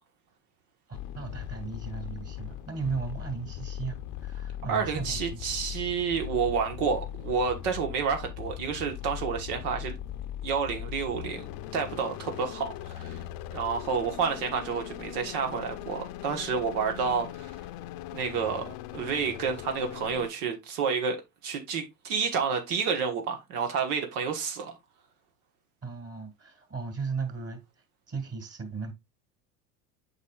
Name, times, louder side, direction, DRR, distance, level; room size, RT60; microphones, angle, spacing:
sound 1, 0.9-20.3, left 12 dB, 50° left, 0.7 m, -39 dB
voice 1, 1.1-5.4 25.8-27.6 28.1-28.9, right 5 dB, 30° right, 2.4 m, -36 dB
voice 2, 4.7-10.0 10.4-11.5 11.7-13.2 13.5-17.5 18.1-24.8, right 6 dB, 75° right, 1.5 m, -30 dB
8.1 x 5.0 x 2.4 m
hypercardioid pair, 95°, 46 cm